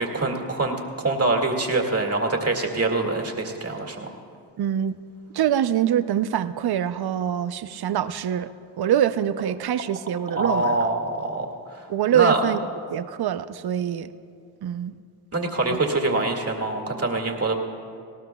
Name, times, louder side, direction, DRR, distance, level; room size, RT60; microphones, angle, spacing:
voice 1, 0.0-4.2 10.3-12.4 15.3-17.6, right 2 dB, 30° right, 2 dB, 2.1 m, -25 dB
voice 2, 4.6-5.0 5.3-8.5 8.8-10.7 11.9-12.6 12.9-14.1 14.6-14.9 15.7-15.8, right 10 dB, 50° right, 13 dB, 0.6 m, -24 dB
19.0 x 18.0 x 2.3 m, 2.4 s
cardioid pair, 65°, 48 cm